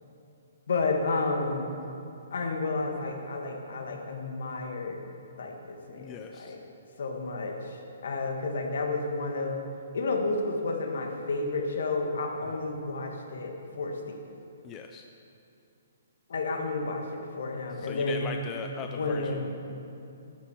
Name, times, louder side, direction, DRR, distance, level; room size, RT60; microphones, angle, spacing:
voice 1, 0.7-1.8 2.3-5.0 5.4-6.6 7.0-9.6 9.9-14.2 16.3-18.3 18.8-19.5, left 3 dB, 60° left, 2 dB, 1.7 m, -31 dB
voice 2, 6.0-6.6 12.5-12.6 14.6-15.1 17.8-19.6, left 6 dB, 15° left, 4 dB, 0.3 m, -40 dB
11.5 x 7.3 x 6.9 m, 2.7 s
hypercardioid pair, 180°, 0 cm